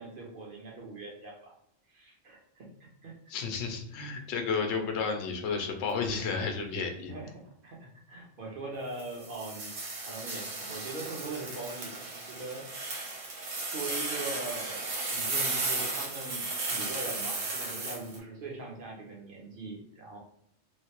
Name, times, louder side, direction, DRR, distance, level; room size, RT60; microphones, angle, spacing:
voice 1, 0.0-1.5 1.9-2.7 3.0-3.1 7.1-9.7 10.0-12.6 13.4-13.5 13.7-16.4 16.7-20.2, right 2 dB, 50° right, -1 dB, 0.9 m, -41 dB
voice 2, 3.3-7.1, left 5 dB, 65° left, 4 dB, 0.9 m, -32 dB
sound 1, 9.0-18.2, right 3 dB, 75° right, 1.2 m, -35 dB
3.1 x 2.4 x 2.9 m, 0.76 s
omnidirectional pair, 1.3 m